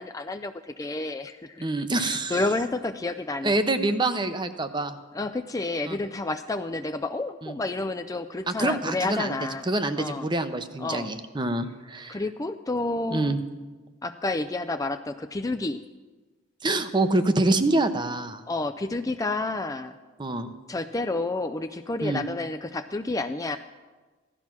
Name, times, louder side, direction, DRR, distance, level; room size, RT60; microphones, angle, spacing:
voice 1, 0.0-1.7 2.0-3.6 5.1-9.7 10.0-10.3 10.8-11.1 12.1-13.4 14.0-15.8 18.5-19.9 20.7-23.6, left 2 dB, 15° left, 8 dB, 0.4 m, -30 dB
voice 2, 1.6-2.4 3.4-4.9 5.9-6.0 7.4-7.5 8.5-9.4 9.6-12.2 13.1-13.4 16.6-18.4 20.2-20.5 22.0-22.2, right 2 dB, 20° right, 10 dB, 0.8 m, -26 dB
16.0 x 12.5 x 6.1 m, 1.3 s
head